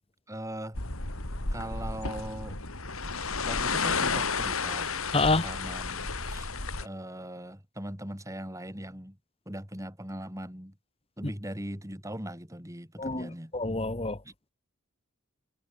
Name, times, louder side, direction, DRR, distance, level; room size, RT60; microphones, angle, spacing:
voice 1, 0.3-0.8 1.5-2.6 3.4-4.9 5.4-6.5 6.8-9.2 9.5-10.8 11.2-13.5 14.2-14.3, right 1 dB, 15° right, 5.0 m, -39 dB
sound 1, 0.7-6.9, left 4 dB, 85° left, 4.0 m, -32 dB
voice 2, 5.1-5.5 13.0-14.2, left 3 dB, 25° left, 1.3 m, -27 dB
head